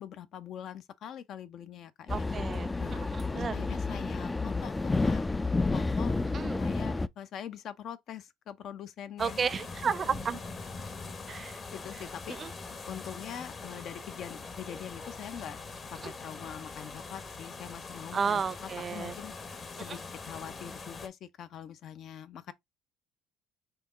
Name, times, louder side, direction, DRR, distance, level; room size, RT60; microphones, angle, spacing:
voice 1, 0.0-2.3 2.8-5.2 5.7-6.1 6.6-9.4 11.4-12.4 12.9-15.6 15.9-22.5, left 9 dB, 55° left, 0.6 m, -43 dB
sound 1, 2.1-7.1, left 3 dB, 15° left, 0.3 m, -30 dB
voice 2, 2.1-3.6 6.3-6.6 9.2-10.4 11.3-11.6 12.3-12.5 16.0-16.1 18.1-19.2 19.8-20.0, right 6 dB, 35° right, 0.5 m, -33 dB
sound 2, 9.2-21.1, left 4 dB, 35° left, 1.0 m, -43 dB
4.6 x 3.0 x 3.7 m
supercardioid pair, 100°, 0 cm